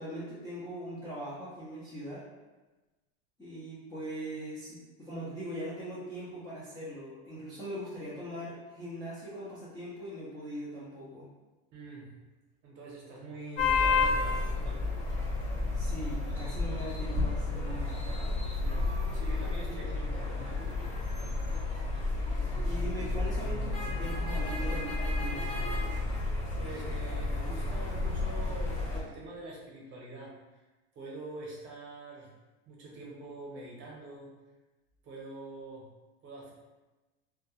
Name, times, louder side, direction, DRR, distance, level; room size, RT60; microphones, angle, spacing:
voice 1, 0.0-2.2 3.4-11.3 15.7-18.0 19.7-19.8 22.7-25.6, equal, 10° left, -12 dB, 0.3 m, -41 dB
voice 2, 11.7-12.1 12.6-15.0 18.5-20.6 26.6-30.3 30.9-32.3 32.7-34.3 35.0-35.8 36.2-36.5, right 2 dB, 35° right, -3 dB, 0.7 m, -45 dB
sound 1, 13.6-29.0, left 3 dB, 45° left, 0.8 m, -31 dB
2.2 x 2.2 x 2.9 m, 1.2 s
supercardioid pair, 155°, 33 cm